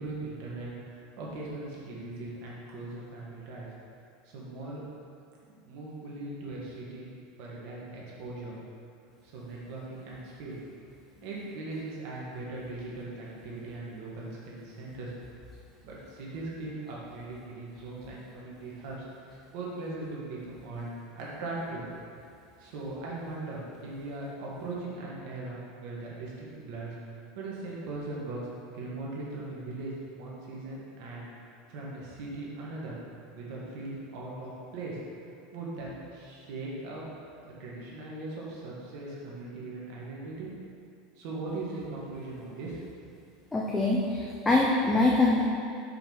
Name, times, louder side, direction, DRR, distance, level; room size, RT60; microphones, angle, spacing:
voice 1, 0.0-3.7 4.2-4.8 5.6-7.1 7.4-8.6 9.3-10.5 11.2-15.1 15.8-19.0 19.3-21.8 22.6-26.9 27.3-28.5 28.7-31.3 31.7-32.9 33.3-35.0 35.5-37.0 37.4-40.5 41.2-42.8, right 2 dB, 50° right, -5 dB, 1.6 m, -39 dB
voice 2, 43.5-45.4, left 2 dB, 10° left, -4 dB, 0.4 m, -24 dB
5.7 x 4.5 x 5.5 m, 2.4 s
supercardioid pair, 180°, 0 cm